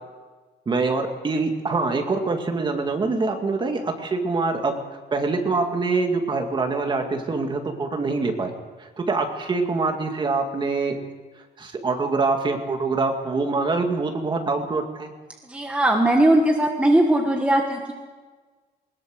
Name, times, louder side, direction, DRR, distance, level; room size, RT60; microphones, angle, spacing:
voice 1, 0.7-4.8 5.1-8.5 8.8-11.0 11.6-15.1, right 3 dB, 25° right, 4 dB, 2.1 m, -24 dB
voice 2, 15.4-17.9, right 1 dB, 5° right, 1 dB, 1.5 m, -19 dB
20.5 x 20.5 x 6.5 m, 1.4 s
cardioid pair, 175°, 18 cm